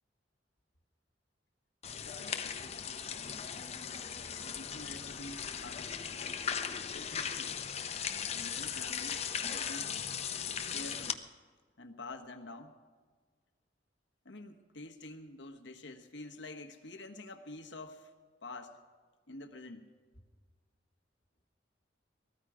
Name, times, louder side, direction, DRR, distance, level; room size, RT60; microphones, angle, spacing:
sound 1, 1.8-11.1, left 7 dB, 35° left, 0.7 m, -38 dB
voice 1, 2.0-2.7 3.1-3.5 4.4-6.4 6.9-7.6 8.3-9.9 10.7-11.2 11.8-12.8 14.2-18.1 18.4-18.8 19.3-19.8, left 2 dB, 75° left, 5 dB, 1.3 m, -48 dB
20.0 x 14.0 x 4.9 m, 1.5 s
head